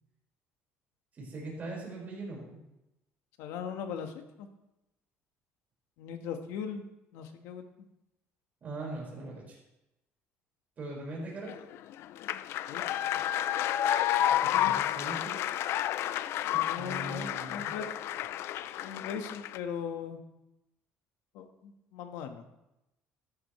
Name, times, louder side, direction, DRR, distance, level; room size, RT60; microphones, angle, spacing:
voice 1, 1.2-2.6 8.6-9.6 10.8-11.6 14.5-15.4 16.4-17.7, right 2 dB, 35° right, -3 dB, 5.0 m, -41 dB
voice 2, 3.4-4.5 6.0-6.8 7.1-7.6 12.7-12.8 14.2-14.7 16.7-17.9 18.8-20.2 21.3-22.4, left 7 dB, 85° left, 6 dB, 1.4 m, -39 dB
sound 1, 11.5-19.6, left 11 dB, 60° left, 0.4 m, -30 dB
13.5 x 11.5 x 3.2 m, 0.91 s
cardioid pair, 140°, 5 cm